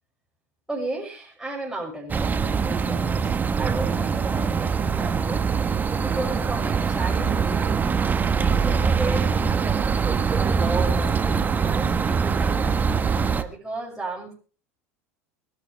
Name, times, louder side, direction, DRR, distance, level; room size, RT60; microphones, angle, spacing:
voice 1, 0.7-5.5 6.0-7.8 8.3-12.7 13.4-14.3, right 2 dB, 5° right, -4 dB, 6.7 m, -34 dB
sound 1, 2.1-13.4, right 6 dB, 20° right, 1.2 m, -23 dB
24.5 x 12.0 x 3.4 m, 0.37 s
hypercardioid pair, 85°, 8 cm